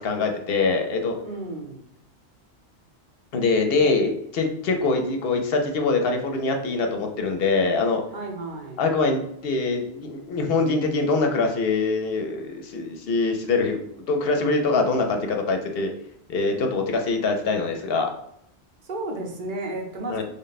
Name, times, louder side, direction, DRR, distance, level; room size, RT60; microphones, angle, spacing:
voice 1, 0.0-1.2 3.3-8.0 8.8-15.9 16.3-18.1 20.1-20.2, left 3 dB, 65° left, 4 dB, 0.8 m, -24 dB
voice 2, 1.2-1.8 8.1-8.9 18.8-20.2, right 2 dB, 55° right, 2 dB, 0.8 m, -33 dB
3.5 x 2.1 x 3.9 m, 0.73 s
omnidirectional pair, 1.1 m